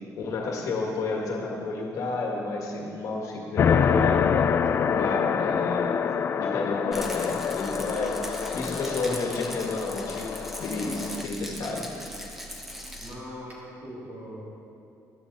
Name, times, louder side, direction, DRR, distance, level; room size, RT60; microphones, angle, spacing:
voice 1, 0.2-4.5 4.9-6.0 6.4-10.3 10.6-11.9, left 3 dB, 60° left, 0 dB, 1.8 m, -31 dB
sound 1, 3.6-11.2, left 7 dB, 35° left, 0.3 m, -26 dB
Rattle, 6.9-13.1, equal, 5° right, 1.1 m, -39 dB
voice 2, 13.0-14.4, equal, 30° right, -6 dB, 3.4 m, -41 dB
14.5 x 12.0 x 4.2 m, 2.5 s
cardioid pair, 170°, 6 cm